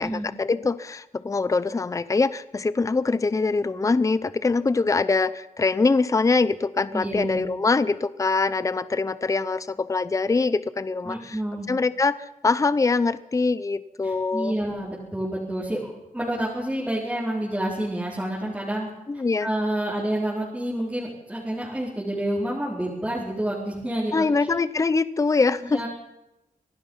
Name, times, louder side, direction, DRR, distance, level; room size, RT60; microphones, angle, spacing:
voice 1, 0.0-11.4 11.7-14.5 19.1-19.5 24.1-25.9, left 3 dB, 25° left, 16 dB, 0.6 m, -23 dB
voice 2, 6.9-7.5 11.0-11.7 14.0-18.9 19.4-24.5 25.5-25.9, right 1 dB, 10° right, -7 dB, 4.4 m, -29 dB
25.5 x 18.0 x 5.7 m, 0.93 s
wide cardioid pair, 150°, 14 cm